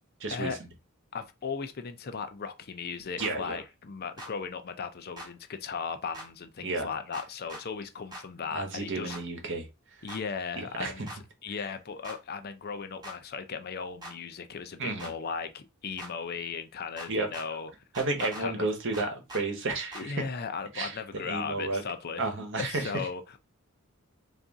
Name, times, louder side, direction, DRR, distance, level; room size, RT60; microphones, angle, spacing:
voice 1, 0.2-0.5 3.2-3.6 6.6-6.9 8.5-9.7 10.6-11.1 14.8-15.1 17.1-17.3 18.0-20.2 20.7-21.8 22.2-22.9, right 3 dB, 55° right, 1.0 m, -32 dB
voice 2, 1.1-9.2 10.0-11.1 11.4-17.7 18.2-18.7 19.9-22.3 22.6-23.4, left 5 dB, 45° left, 0.5 m, -37 dB
sound 1, 3.2-3.3 4.2-4.3 5.2-5.3 6.1-6.3 7.1-7.6 8.1-8.2 9.1-9.2 10.1-10.2 11.1-11.2 12.0-12.2 13.0-13.2 14.0-14.1 15.0-15.1 16.0-16.1 17.0-17.5 17.9-18.4 18.9-19.4 19.9-20.1, right 1 dB, 20° right, 1.0 m, -42 dB
4.0 x 2.6 x 3.5 m
head